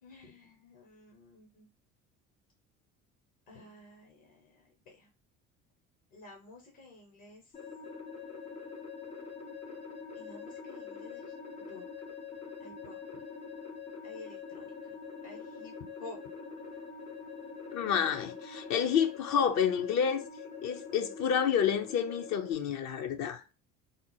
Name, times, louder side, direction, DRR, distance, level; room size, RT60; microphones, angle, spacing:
voice 1, 0.0-1.7 3.5-5.1 6.1-7.5 10.1-11.8 12.6-13.2 14.0-16.2, left 2 dB, 60° left, 1.1 m, -52 dB
sound 1, 7.5-22.5, left 5 dB, 85° left, 1.2 m, -44 dB
voice 2, 17.7-20.3 20.6-23.4, left 8 dB, 45° left, 0.5 m, -29 dB
3.4 x 2.0 x 3.1 m
figure-of-eight pair, 60°, 40 cm